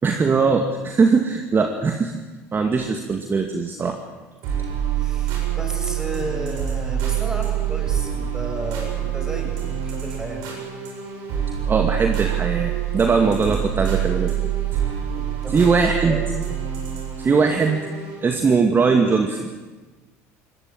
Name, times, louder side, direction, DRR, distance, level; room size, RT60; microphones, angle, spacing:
voice 1, 0.0-2.1 2.5-4.0 11.7-14.3 15.5-16.2 17.2-17.8 18.2-19.5, right 4 dB, 30° right, 5 dB, 2.2 m, -20 dB
sound 1, 4.4-18.3, right 10 dB, 70° right, 8.0 m, -26 dB
voice 2, 5.0-10.4 15.1-16.2, right 1 dB, 10° right, 2 dB, 7.4 m, -33 dB
21.5 x 18.0 x 9.1 m, 1.2 s
hypercardioid pair, 80°, 7 cm